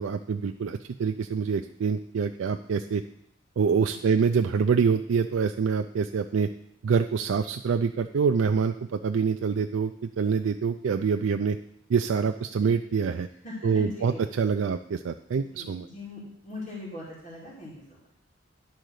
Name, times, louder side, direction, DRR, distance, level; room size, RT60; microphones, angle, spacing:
voice 1, 0.0-3.0 3.6-6.5 6.8-11.6 11.9-13.3 13.6-15.9, right 6 dB, 80° right, 6 dB, 0.4 m, -26 dB
voice 2, 13.4-14.2 15.3-17.8, left 2 dB, 40° left, -6 dB, 2.4 m, -40 dB
10.5 x 3.9 x 6.4 m, 0.72 s
head